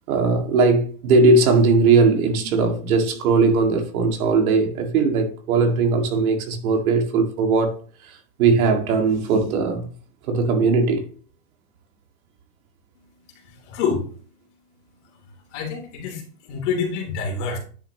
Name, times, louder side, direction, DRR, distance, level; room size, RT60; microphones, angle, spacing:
voice 1, 0.1-7.8 8.4-9.9 10.3-11.0, right 4 dB, 65° right, 2.1 m, -19 dB
voice 2, 13.3-14.1 15.0-17.6, left 5 dB, 50° left, 3.0 m, -28 dB
9.9 x 6.1 x 2.9 m
supercardioid pair, 165°, 45 cm